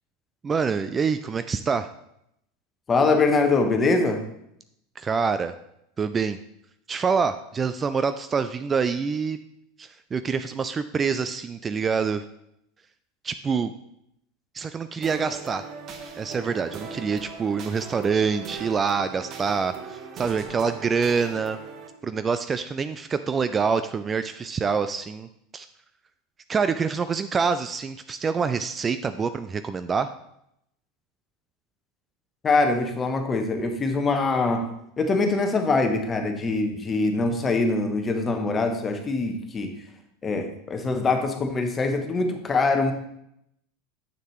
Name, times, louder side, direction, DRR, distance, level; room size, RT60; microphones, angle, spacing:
voice 1, 0.4-1.9 5.0-5.5 6.0-6.4 6.9-9.4 9.8-12.2 13.2-13.7 14.5-15.7 16.2-21.6 22.0-25.3 25.5-25.7 26.5-30.1, right 5 dB, 25° right, 11 dB, 0.3 m, -26 dB
voice 2, 2.9-4.2 32.4-34.7 35.0-39.7 40.2-42.9, left 3 dB, 25° left, 5 dB, 1.0 m, -23 dB
sound 1, 15.0-21.9, right 5 dB, 40° right, 1.0 m, -39 dB
7.2 x 6.4 x 3.2 m, 0.77 s
figure-of-eight pair, 80°, 0 cm